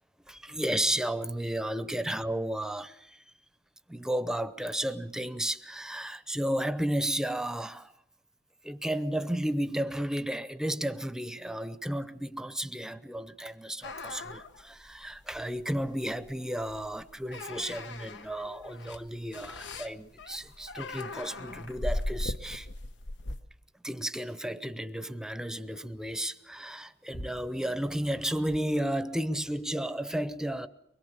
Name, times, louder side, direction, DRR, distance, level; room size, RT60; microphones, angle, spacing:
voice 1, 0.3-3.2 3.9-7.9 8.6-22.7 23.8-30.7, right 1 dB, 5° right, 0.7 m, -33 dB
sound 1, 13.8-23.4, left 2 dB, 85° left, 1.0 m, -39 dB
sound 2, 24.9-29.9, equal, 60° left, 2.3 m, -49 dB
24.0 x 21.5 x 6.9 m
head